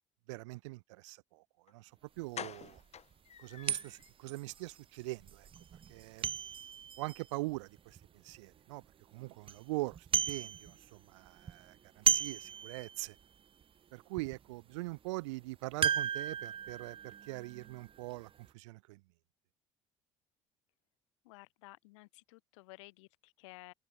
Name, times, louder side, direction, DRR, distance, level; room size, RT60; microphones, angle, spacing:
voice 1, 0.3-1.9 2.2-2.8 3.4-5.5 5.9-6.3 7.0-8.8 9.1-13.2 13.9-19.0, right 23 dB, 75° right, 2.4 m, -42 dB
sound 1, 1.7-1.8 2.3-4.1 4.5-4.6 4.9-5.1 5.4-5.5, left 8 dB, 45° left, 6.6 m, -47 dB
sound 2, 2.2-2.3 2.8-2.9 3.7-8.4 8.8-8.9 9.2-9.6 9.9-11.0 11.2-13.2 13.6-13.7 14.2-14.4 15.8-18.2 18.5-18.6, right 8 dB, 35° right, 0.6 m, -35 dB
voice 2, 21.2-23.7, left 24 dB, 75° left, 6.0 m, -54 dB
hypercardioid pair, 55°, 16 cm